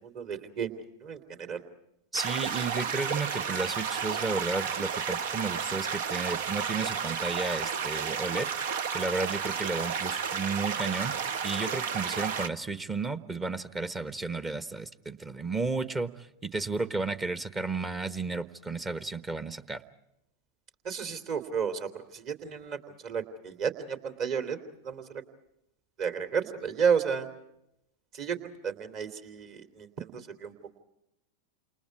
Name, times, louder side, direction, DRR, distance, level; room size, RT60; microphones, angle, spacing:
voice 1, 0.0-1.6 20.8-24.6 24.8-25.0 26.0-27.3 28.1-28.4 28.6-30.5, right 6 dB, 40° right, 8 dB, 3.1 m, -32 dB
voice 2, 2.1-8.5 8.9-11.2 11.4-19.8, right 3 dB, 15° right, 13 dB, 1.2 m, -33 dB
sound 1, 2.1-12.5, right 7 dB, 55° right, 1.2 m, -32 dB
29.5 x 28.0 x 4.7 m, 0.84 s
figure-of-eight pair, 90°, 0 cm